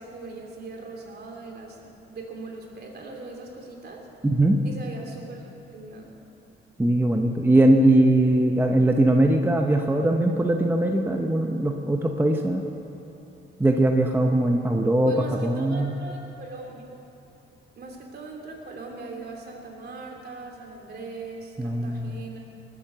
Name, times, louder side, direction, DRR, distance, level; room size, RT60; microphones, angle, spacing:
voice 1, 0.0-1.8 2.1-4.1 4.6-6.1 15.0-16.8 17.8-22.4, right 3 dB, 55° right, 0 dB, 3.0 m, -40 dB
voice 2, 4.2-4.6 6.8-12.6 13.6-15.1 15.4-15.9 21.6-22.1, right 1 dB, 10° right, 3 dB, 0.9 m, -21 dB
19.5 x 9.1 x 6.9 m, 2.9 s
cardioid pair, 90°, 20 cm